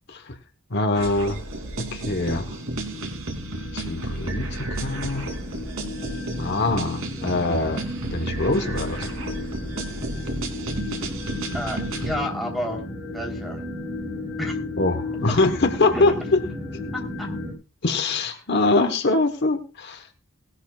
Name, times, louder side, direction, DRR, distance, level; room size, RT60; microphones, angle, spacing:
voice 1, 0.7-1.4 1.9-2.6 3.7-5.3 6.4-7.8 8.1-9.1 14.8-16.1 17.8-20.1, left 2 dB, 55° left, 7 dB, 1.2 m, -23 dB
sound 1, 0.9-12.2, right 2 dB, 85° right, 3.0 m, -32 dB
sound 2, 1.9-17.5, left 2 dB, 20° right, 4.5 m, -34 dB
voice 2, 11.5-12.8 13.1-13.6 14.4-14.6 15.9-16.0 17.2-17.3, equal, ahead, 1 dB, 3.6 m, -30 dB
18.5 x 12.5 x 2.4 m, 0.32 s
head